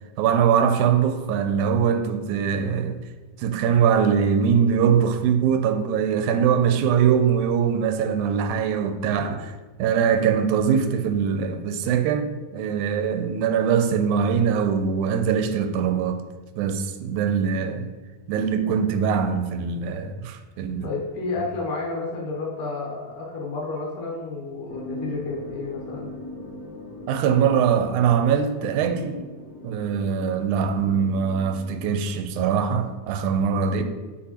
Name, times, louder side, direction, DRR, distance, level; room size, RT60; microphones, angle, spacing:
voice 1, 0.2-3.0 3.4-9.5 9.8-16.2 16.6-17.9 18.3-20.9 27.1-29.2 29.6-33.8, right 7 dB, 90° right, 2.0 m, -22 dB
voice 2, 20.8-26.1, left 3 dB, 65° left, 1.5 m, -31 dB
sound 1, 24.7-32.0, left 2 dB, 40° left, 1.4 m, -40 dB
8.6 x 4.3 x 2.9 m
omnidirectional pair, 3.4 m